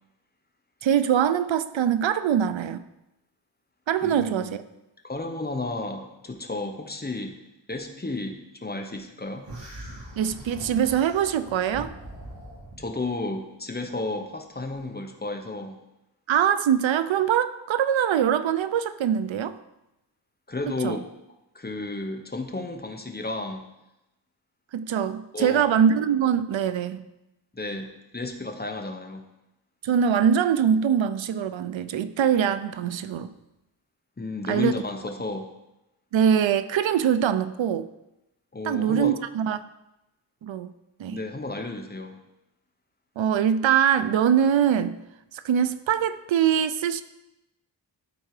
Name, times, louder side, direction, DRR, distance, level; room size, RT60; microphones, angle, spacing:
voice 1, 0.8-2.8 3.9-4.6 10.2-11.9 16.3-19.6 20.7-21.0 24.7-27.1 29.8-33.3 34.5-34.7 36.1-37.9 38.6-39.6 40.4-40.7 41.0-41.2 43.2-45.0 45.4-47.0, right 8 dB, 85° right, 13 dB, 0.6 m, -23 dB
voice 2, 4.0-4.6 5.0-7.3 7.7-9.5 12.8-15.8 20.5-21.0 21.5-23.6 25.3-25.7 27.5-29.2 34.2-35.5 38.5-39.1 41.1-42.2, left 2 dB, 20° left, 4 dB, 0.9 m, -32 dB
sound 1, 9.4-12.9, right 1 dB, 65° right, 2.9 m, -41 dB
12.5 x 4.5 x 4.8 m, 0.93 s
wide cardioid pair, 120°, 45 cm